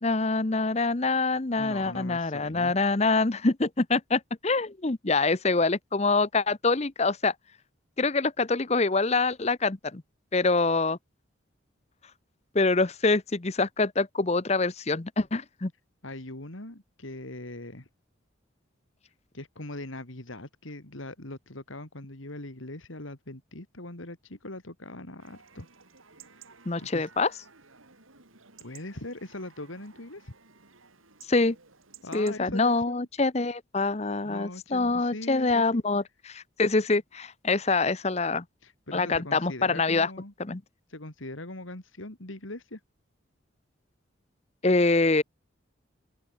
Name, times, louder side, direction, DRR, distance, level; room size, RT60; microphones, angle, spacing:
voice 1, 0.0-7.3 8.0-10.0 10.3-11.0 12.5-15.7 26.7-27.3 31.3-31.6 32.1-38.4 38.9-40.1 40.4-40.6 44.6-45.2, left 3 dB, 30° left, 0.8 m, -25 dB
voice 2, 1.6-2.7 16.0-17.9 19.3-25.7 26.8-27.1 28.6-30.3 32.0-33.1 34.2-35.8 38.6-40.3 40.9-42.8, left 1 dB, 80° left, 3.2 m, -41 dB
Chatter / Livestock farm animals working animals / Chirp tweet, 25.2-32.4, right 6 dB, 90° right, 5.6 m, -55 dB
open air
head